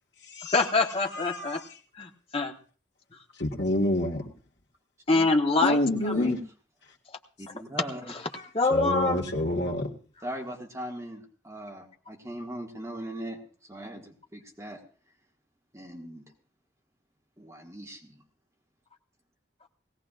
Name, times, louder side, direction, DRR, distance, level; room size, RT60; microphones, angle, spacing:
voice 1, 0.5-1.6 2.0-2.5 5.1-5.8 6.0-6.3 8.5-9.2, left 3 dB, 35° left, 2 dB, 1.2 m, -24 dB
voice 2, 1.1-1.8 3.4-4.2 5.6-6.4 8.7-9.9, left 1 dB, 80° left, -2 dB, 1.6 m, -27 dB
voice 3, 7.4-8.2 10.2-14.8 15.7-16.3 17.4-18.2, right 1 dB, 15° right, 0 dB, 1.8 m, -40 dB
20.0 x 16.5 x 2.5 m, 0.39 s
head